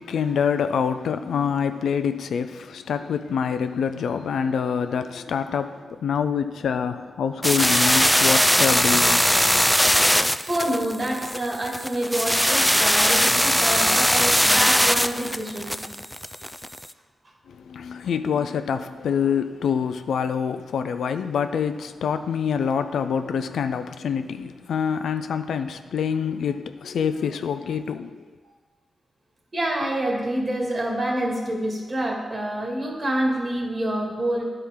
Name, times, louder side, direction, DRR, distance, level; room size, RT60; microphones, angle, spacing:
voice 1, 0.0-9.5 17.5-28.3, left 7 dB, 80° left, 0.3 m, -26 dB
sound 1, 7.4-16.9, equal, 5° left, 0.3 m, -20 dB
voice 2, 10.5-15.8 29.5-34.4, right 1 dB, 45° right, 2.0 m, -27 dB
10.5 x 4.4 x 3.7 m
supercardioid pair, 40°, 0 cm